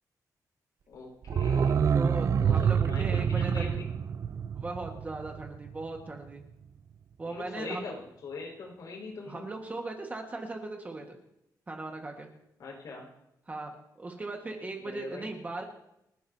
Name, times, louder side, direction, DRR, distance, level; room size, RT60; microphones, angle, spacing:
voice 1, 0.9-1.8 2.4-3.9 7.2-9.5 12.6-13.1 14.8-15.3, left 3 dB, 65° left, -2 dB, 5.2 m, -42 dB
sound 1, 1.2-6.0 6.3-6.4, right 7 dB, 50° right, 0.4 m, -27 dB
voice 2, 1.9-3.8 4.5-6.4 7.2-7.9 9.3-11.2 11.7-12.3 13.5-13.7 14.0-15.6, right 2 dB, 25° right, 2 dB, 1.6 m, -38 dB
30.0 x 10.0 x 2.8 m, 0.83 s
wide cardioid pair, 160°, 7 cm